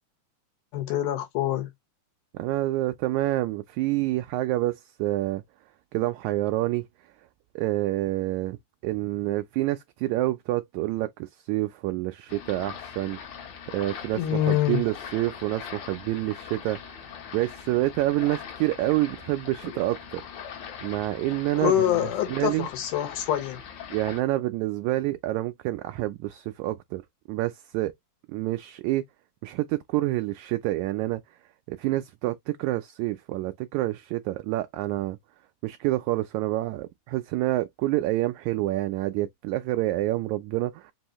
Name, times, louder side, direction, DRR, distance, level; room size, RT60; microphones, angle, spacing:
voice 1, 0.7-1.7 14.2-14.8 21.6-23.6, left 12 dB, 80° left, 2.7 m, -25 dB
voice 2, 2.3-5.4 5.9-6.9 7.6-8.6 8.8-13.2 13.7-17.1 17.3-20.2 20.8-22.7 23.9-27.0 27.3-27.9 28.3-29.0 29.4-31.2 31.7-35.2 35.6-40.9, right 17 dB, 80° right, 1.8 m, -28 dB
sound 1, 12.3-24.2, left 8 dB, 65° left, 2.2 m, -41 dB
5.5 x 2.6 x 3.0 m
omnidirectional pair, 3.7 m